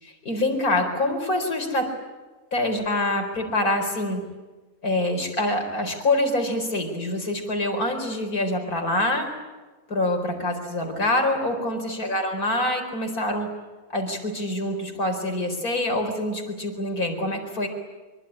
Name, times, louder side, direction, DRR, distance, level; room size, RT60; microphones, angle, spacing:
voice 1, 0.0-1.9 2.5-4.2 4.8-9.3 9.9-13.5 13.9-17.7, left 1 dB, 85° left, 4 dB, 5.2 m, -25 dB
25.0 x 24.0 x 9.9 m, 1.3 s
omnidirectional pair, 1.5 m